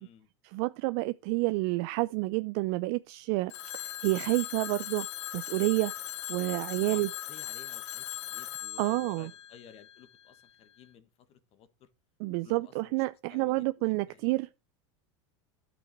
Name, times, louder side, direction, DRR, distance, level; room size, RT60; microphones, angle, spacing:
voice 1, 0.4-5.1 5.3-5.9 6.3-7.1 8.8-9.3 12.2-14.5, right 22 dB, 55° right, 0.5 m, -29 dB
Telephone, 3.5-10.3, left 13 dB, 75° left, 1.0 m, -39 dB
voice 2, 6.8-11.9 12.4-12.9 13.3-14.3, left 9 dB, 40° left, 1.5 m, -54 dB
12.0 x 6.2 x 4.7 m
hypercardioid pair, 115°, 15 cm